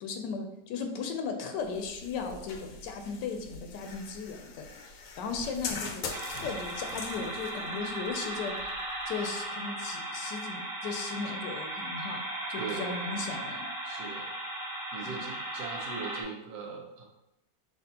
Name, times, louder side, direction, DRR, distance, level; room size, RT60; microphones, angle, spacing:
voice 1, 0.0-8.5 9.1-12.2 12.5-13.7 15.0-15.2, left 5 dB, 90° left, 5 dB, 1.2 m, -37 dB
sound 1, 1.6-9.5, left 4 dB, 65° left, 0.9 m, -43 dB
sound 2, 6.1-16.2, right 1 dB, ahead, 1.0 m, -37 dB
voice 2, 12.6-12.9 13.8-14.3 14.9-17.0, right 5 dB, 70° right, 0 dB, 1.3 m, -40 dB
5.8 x 2.7 x 2.8 m, 0.87 s
omnidirectional pair, 1.8 m